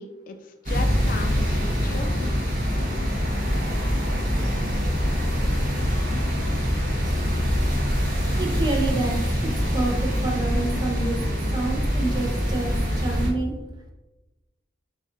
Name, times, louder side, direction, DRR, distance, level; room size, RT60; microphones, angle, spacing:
voice 1, 0.0-2.3, left 3 dB, 45° left, 7 dB, 0.3 m, -36 dB
sound 1, 0.7-13.3, equal, 45° right, 1.1 m, -24 dB
voice 2, 8.4-11.2 11.5-13.5, right 2 dB, 20° right, 0 dB, 0.7 m, -28 dB
7.2 x 2.5 x 2.6 m, 1.1 s
head